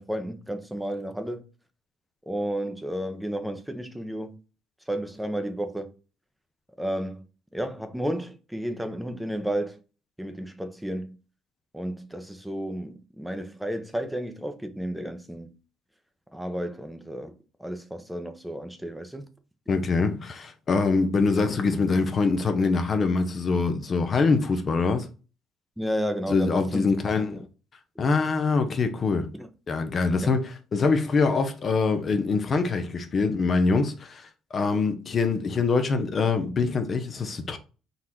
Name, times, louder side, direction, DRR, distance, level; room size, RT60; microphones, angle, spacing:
voice 1, 0.0-1.4 2.3-4.4 4.9-5.9 6.8-7.2 7.5-9.8 10.2-11.1 11.7-15.5 16.3-17.3 17.6-19.3 25.8-27.4 29.3-29.5, equal, 5° right, 0.8 m, -32 dB
voice 2, 19.7-25.1 26.3-27.5 28.0-29.3 29.7-37.6, left 4 dB, 45° left, 0.7 m, -24 dB
4.0 x 2.4 x 4.3 m
supercardioid pair, 75°, 0 cm